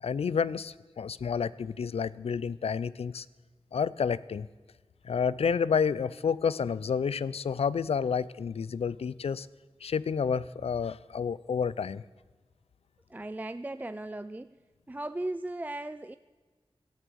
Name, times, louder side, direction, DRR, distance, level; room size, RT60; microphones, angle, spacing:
voice 1, 0.0-3.3 3.7-4.5 5.0-9.5 9.8-12.0, left 6 dB, 85° left, 19 dB, 0.5 m, -30 dB
voice 2, 13.1-14.6 14.9-16.2, right 1 dB, 15° right, 12 dB, 0.4 m, -37 dB
18.0 x 13.0 x 6.3 m, 1.4 s
wide cardioid pair, 90°, 10 cm